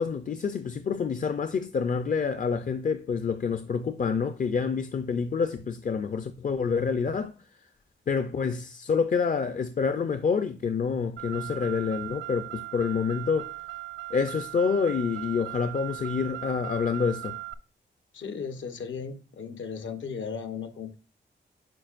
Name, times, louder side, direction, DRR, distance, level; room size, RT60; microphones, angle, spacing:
voice 1, 0.0-7.3 8.1-13.5 14.1-17.4, left 5 dB, 45° left, 0.5 m, -27 dB
Car, 11.2-17.5, right 16 dB, 75° right, 0.5 m, -39 dB
voice 2, 18.1-21.0, left 6 dB, 80° left, 1.0 m, -36 dB
9.1 x 5.1 x 2.5 m
wide cardioid pair, 155°, 20 cm